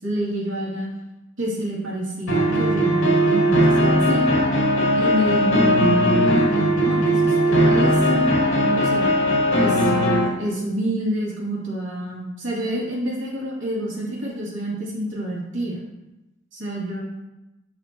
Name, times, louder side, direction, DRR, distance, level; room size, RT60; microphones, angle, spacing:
voice 1, 0.0-0.9 1.4-4.2 4.9-9.1 9.6-9.9 10.4-15.8 16.5-17.0, right 1 dB, 65° right, -5 dB, 2.9 m, -28 dB
sound 1, 2.3-10.3, equal, 60° left, 2.7 m, -18 dB
13.0 x 4.9 x 3.1 m, 1.0 s
head